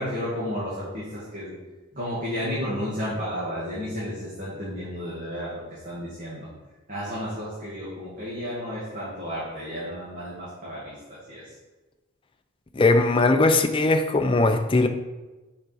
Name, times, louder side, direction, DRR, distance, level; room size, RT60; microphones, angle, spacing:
voice 1, 0.0-1.5 1.9-6.5 6.9-11.4, equal, 40° right, 2.2 m, -32 dB
voice 2, 12.7-14.9, left 2 dB, 25° left, 0.5 m, -20 dB
7.3 x 5.1 x 4.8 m
head